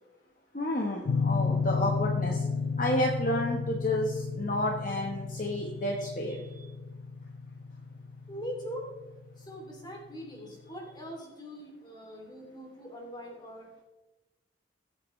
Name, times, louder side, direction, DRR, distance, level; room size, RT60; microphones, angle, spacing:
voice 1, 0.5-2.4 2.8-6.4, left 1 dB, 40° left, 0 dB, 1.2 m, -30 dB
sound 1, 1.0-9.8, left 5 dB, 75° left, 0.4 m, -33 dB
voice 2, 5.4-6.7 8.3-8.9 9.4-13.7, equal, 20° left, 0 dB, 2.8 m, -43 dB
20.5 x 8.4 x 3.2 m, 1.1 s
head